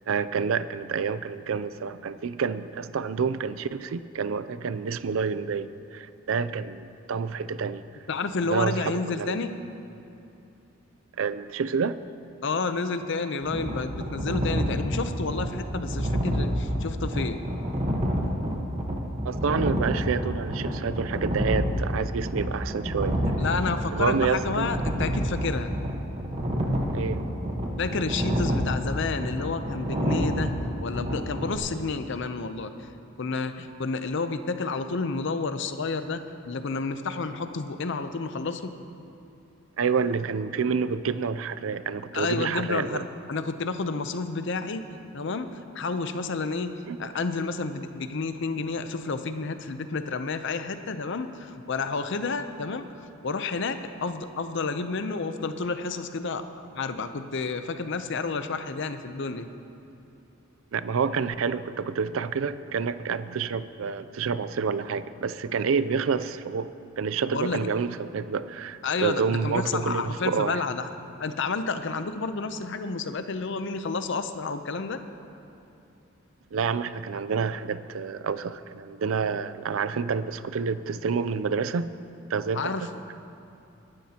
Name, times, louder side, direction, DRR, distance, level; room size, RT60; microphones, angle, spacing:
voice 1, 0.1-7.8 8.5-9.5 11.1-12.0 19.2-23.2 23.9-24.7 26.9-27.3 39.8-43.0 46.9-47.3 60.7-66.7 67.0-70.6 76.5-81.9 82.3-82.9, right 5 dB, 75° right, 14 dB, 0.4 m, -28 dB
voice 2, 8.1-9.5 12.4-17.4 23.4-25.7 27.8-30.5 30.8-32.7 33.2-38.7 42.1-44.8 45.1-46.7 47.0-52.9 53.2-59.5 67.3-67.6 68.8-70.8 71.2-75.0 82.5-82.8, left 4 dB, 60° left, 9 dB, 0.6 m, -30 dB
sound 1, 13.4-31.6, equal, 30° right, 1.2 m, -29 dB
22.0 x 11.5 x 2.9 m, 2.8 s
head